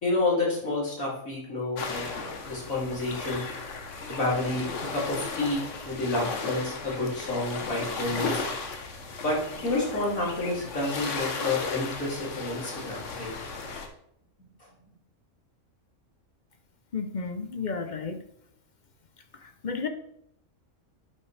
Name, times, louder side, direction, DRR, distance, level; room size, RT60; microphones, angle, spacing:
voice 1, 0.0-2.0 2.4-3.4 4.1-8.4 9.2-13.3, left 2 dB, 85° left, -5 dB, 3.3 m, -29 dB
sound 1, 1.8-13.9, left 4 dB, 65° left, 1.3 m, -35 dB
voice 2, 16.9-18.2 19.3-19.9, left 5 dB, 45° left, 7 dB, 0.7 m, -32 dB
11.0 x 5.8 x 3.3 m, 0.74 s
omnidirectional pair, 1.4 m